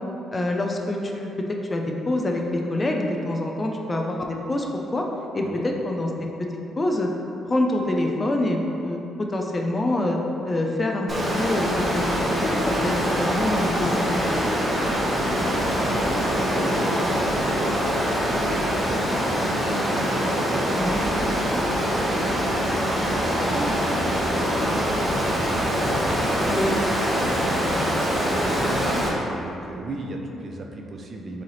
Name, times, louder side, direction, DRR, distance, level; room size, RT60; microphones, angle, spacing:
voice 1, 0.3-4.7 4.9-5.1 5.3-6.5 6.8-7.1 7.5-10.2 10.4-11.1 11.4-14.4 20.7-21.0 26.5-26.7, left 1 dB, 25° left, 1 dB, 0.5 m, -26 dB
Water, 11.1-29.1, equal, 20° right, 1.0 m, -24 dB
voice 2, 15.5-17.9 18.4-25.9 26.3-27.2 27.5-28.9 29.2-31.4, right 2 dB, 45° right, 2 dB, 0.5 m, -36 dB
3.7 x 3.2 x 4.0 m, 2.9 s
cardioid pair, 80°, 0 cm